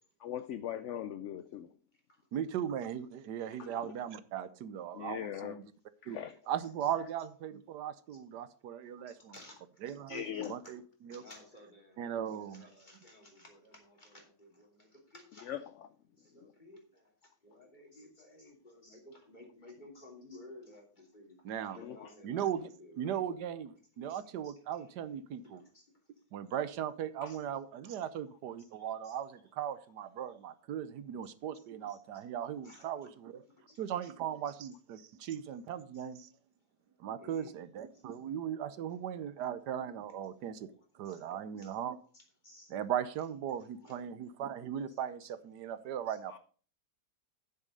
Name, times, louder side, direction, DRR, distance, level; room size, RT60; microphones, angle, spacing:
voice 1, 0.2-1.7 3.8-3.9 4.9-5.6 6.0-6.4 10.1-10.5 15.5-15.6 16.4-16.5 21.8-22.1 27.2-27.3 46.3-46.4, left 10 dB, 70° left, 0.7 m, -40 dB
voice 2, 2.3-5.6 6.1-6.2 6.5-9.3 9.8-11.2 12.0-12.6 21.4-21.8 22.2-22.6 23.0-25.6 26.3-33.4 33.8-36.3 37.0-42.0 42.7-46.4, right 9 dB, 85° right, 1.3 m, -38 dB
voice 3, 3.3-3.8 6.6-7.0 8.1-8.2 9.0-9.6 9.9-10.7 11.1-15.6 16.1-17.1 17.4-21.4 21.7-23.2 24.0-24.9 25.5-25.8 27.3-27.4 28.6-28.7 29.0-29.5 31.9-32.0 32.6-33.1 33.7-34.1 35.2-35.3 35.9-36.1 37.2-37.6 40.7-41.2 41.6-41.8 42.1-42.8 43.8-44.0 44.9-45.3 46.1-46.2, left 2 dB, 25° left, 3.0 m, -56 dB
9.7 x 7.3 x 5.2 m
omnidirectional pair, 1.8 m